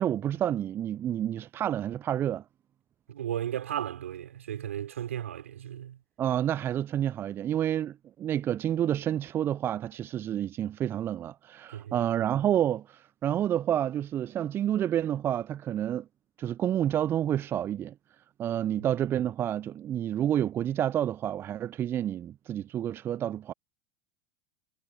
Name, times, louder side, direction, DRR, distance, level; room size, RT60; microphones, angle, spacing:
voice 1, 0.0-2.4 6.2-16.1 16.4-17.9 18.4-23.5, right 11 dB, 30° right, 0.5 m, -29 dB
voice 2, 3.1-6.0 11.7-12.0 18.7-18.9, right 10 dB, 70° right, 5.6 m, -35 dB
figure-of-eight pair, 85°, 7 cm